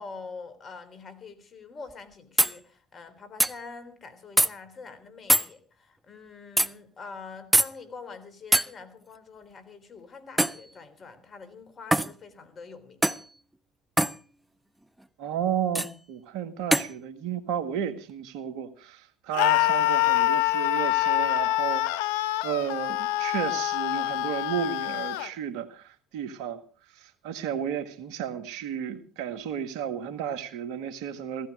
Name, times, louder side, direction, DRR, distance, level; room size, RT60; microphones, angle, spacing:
voice 1, 0.0-13.2, left 4 dB, 40° left, 3.7 m, -45 dB
sound 1, 1.9-2.0 2.4-2.5 3.4-3.5 4.4-4.5 5.3-5.5 6.6-6.7 7.5-7.7 8.5-8.7 10.4-10.6 11.9-12.1 13.0-13.2 14.0-14.2 15.7-15.9 16.7-16.9, right 1 dB, 5° right, 0.7 m, -22 dB
voice 2, 15.2-26.6 27.0-31.5, right 9 dB, 70° right, 1.7 m, -33 dB
Screaming, 19.3-25.3, left 15 dB, 80° left, 0.7 m, -25 dB
16.5 x 15.0 x 4.9 m
hypercardioid pair, 70°, 0 cm